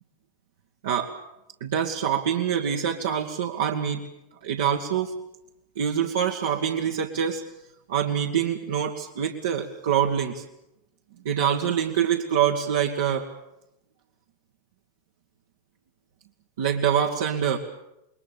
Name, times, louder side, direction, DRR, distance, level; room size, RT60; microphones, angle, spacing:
voice 1, 1.6-4.0 4.4-5.1 5.8-7.4 7.9-10.4 11.3-13.3 16.6-17.6, right 8 dB, 60° right, 0 dB, 1.8 m, -25 dB
27.5 x 22.0 x 7.0 m, 0.88 s
figure-of-eight pair, 90°, 0 cm